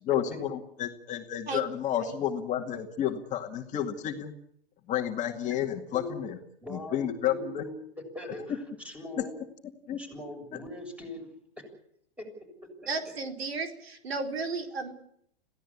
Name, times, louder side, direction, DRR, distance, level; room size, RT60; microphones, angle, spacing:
voice 1, 0.1-4.3 4.9-6.4 6.7-7.6 9.9-10.0, left 10 dB, 25° left, 2 dB, 2.2 m, -31 dB
voice 2, 6.6-7.8 8.1-9.3 10.0-11.3 11.6-11.7 12.2-12.3 12.8-12.9, left 1 dB, 5° right, 4 dB, 7.2 m, -41 dB
voice 3, 12.9-14.9, right 3 dB, 80° right, 4 dB, 4.5 m, -33 dB
26.5 x 16.5 x 8.5 m, 0.71 s
hypercardioid pair, 140°, 30 cm